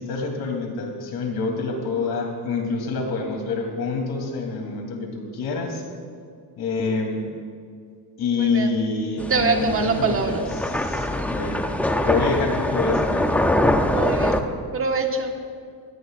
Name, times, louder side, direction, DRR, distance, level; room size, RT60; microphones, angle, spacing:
voice 1, 0.0-5.8 6.6-7.2 8.2-11.6 12.0-13.5, left 4 dB, 65° left, 1 dB, 3.1 m, -26 dB
voice 2, 8.3-8.7 9.3-10.4 13.9-14.4 14.7-15.3, right 4 dB, 30° right, 3 dB, 1.4 m, -24 dB
sound 1, 9.2-14.4, left 1 dB, 5° left, 0.5 m, -23 dB
22.5 x 17.0 x 2.5 m, 2.2 s
cardioid pair, 155°, 43 cm